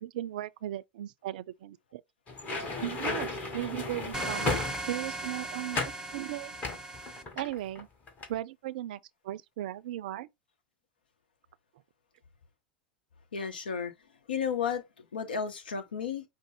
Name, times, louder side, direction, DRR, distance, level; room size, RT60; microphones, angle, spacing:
voice 1, 0.0-2.0 2.8-6.6 7.3-7.9 8.3-9.0 9.2-10.3, right 13 dB, 60° right, 0.4 m, -37 dB
sound 1, 2.3-5.2 5.7-6.0 6.6-7.8 8.1-8.3, left 3 dB, 30° left, 1.6 m, -34 dB
sound 2, 4.1-7.2, right 2 dB, 10° right, 0.9 m, -37 dB
voice 2, 13.3-13.9 14.3-16.2, left 6 dB, 75° left, 0.8 m, -33 dB
5.2 x 2.0 x 4.7 m
figure-of-eight pair, 85°, 5 cm